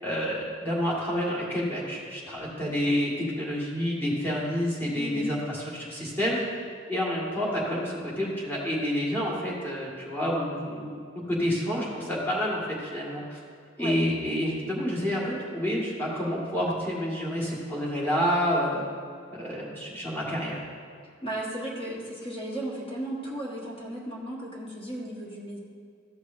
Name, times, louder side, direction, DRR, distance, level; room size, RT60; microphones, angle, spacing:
voice 1, 0.0-6.4 6.9-13.4 13.8-18.8 19.3-20.6, equal, 10° left, -6 dB, 1.8 m, -29 dB
voice 2, 5.0-5.3 13.8-14.0 21.2-25.6, right 1 dB, 30° left, -3 dB, 1.4 m, -35 dB
13.5 x 6.5 x 2.6 m, 2.2 s
head